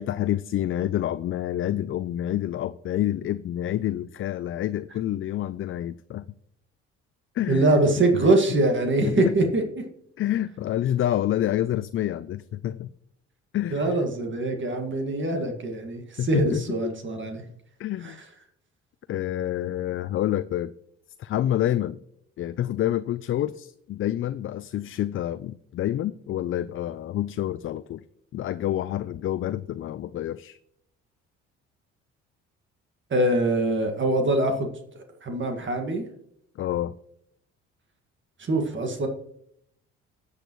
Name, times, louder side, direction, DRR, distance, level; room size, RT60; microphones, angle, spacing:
voice 1, 0.0-6.3 7.3-7.8 9.0-9.4 10.2-12.9 13.5-14.0 16.2-16.9 17.8-18.2 19.1-20.7 21.2-22.0 22.4-28.0 28.3-30.6 36.6-36.9, left 12 dB, 45° left, 14 dB, 0.4 m, -28 dB
voice 2, 7.5-9.8 13.7-17.5 18.0-18.3 33.1-34.7 35.0-36.0 38.4-39.1, right 2 dB, 40° right, 4 dB, 1.9 m, -24 dB
13.5 x 8.2 x 3.1 m, 0.72 s
supercardioid pair, 75°, 29 cm